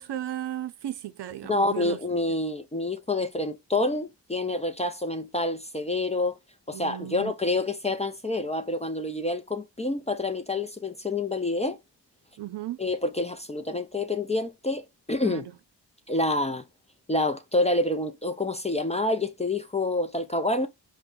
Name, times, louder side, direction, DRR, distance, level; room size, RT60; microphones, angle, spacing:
voice 1, 0.0-2.0 6.7-7.3 12.4-12.8 15.2-15.5, right 12 dB, 65° right, 0.6 m, -35 dB
voice 2, 1.5-6.4 6.7-11.8 12.8-15.5 16.1-16.6 17.1-20.7, left 2 dB, 15° left, 0.4 m, -27 dB
4.4 x 2.2 x 3.6 m
cardioid pair, 55°, 44 cm